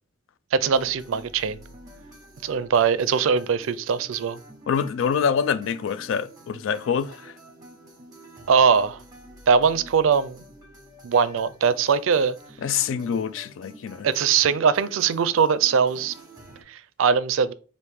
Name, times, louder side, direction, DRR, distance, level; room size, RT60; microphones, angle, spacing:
voice 1, 0.5-1.6 2.4-4.4 8.5-9.0 9.5-10.5 11.0-12.3 14.0-16.1 16.7-17.5, right 6 dB, 80° right, 0.4 m, -21 dB
sound 1, 0.6-16.6, right 1 dB, 20° right, 1.1 m, -48 dB
voice 2, 4.7-7.3 12.6-14.1, left 7 dB, 75° left, 0.3 m, -26 dB
4.7 x 2.5 x 3.4 m
head